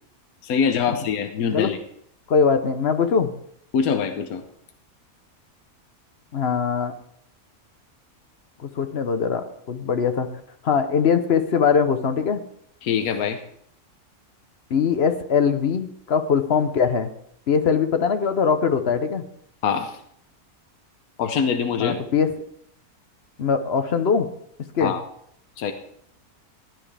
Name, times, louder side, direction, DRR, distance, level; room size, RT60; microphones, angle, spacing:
voice 1, 0.4-1.8 3.7-4.4 12.8-13.4 19.6-20.0 21.2-22.0 24.8-25.0 25.6-25.7, left 6 dB, 75° left, 6 dB, 1.3 m, -23 dB
voice 2, 2.3-3.3 6.3-6.9 8.6-10.3 10.6-12.4 14.7-17.1 17.5-19.2 21.8-22.3 23.4-24.3 24.7-24.9, left 6 dB, 50° left, 9 dB, 0.9 m, -21 dB
16.0 x 9.6 x 3.4 m, 0.68 s
omnidirectional pair, 1.6 m